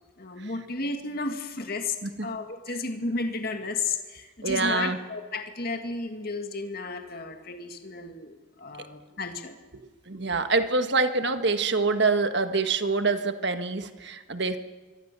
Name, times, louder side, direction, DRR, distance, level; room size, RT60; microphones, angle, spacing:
voice 1, 0.2-2.0 2.2-9.6, left 3 dB, 45° left, 5 dB, 2.1 m, -33 dB
voice 2, 4.4-5.0 8.8-8.9 10.1-14.6, right 3 dB, 55° right, 8 dB, 1.6 m, -25 dB
26.0 x 23.0 x 6.9 m, 1.3 s
head